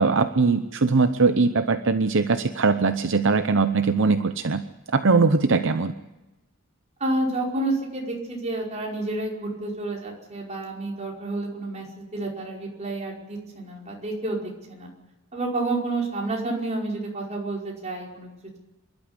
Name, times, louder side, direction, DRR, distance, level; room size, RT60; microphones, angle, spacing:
voice 1, 0.0-4.6 4.9-5.9, right 4 dB, 55° right, 9 dB, 0.8 m, -21 dB
voice 2, 7.0-14.4 14.7-14.9 15.3-18.3, right 2 dB, 30° right, -2 dB, 5.2 m, -29 dB
26.5 x 12.5 x 9.8 m, 1.0 s
head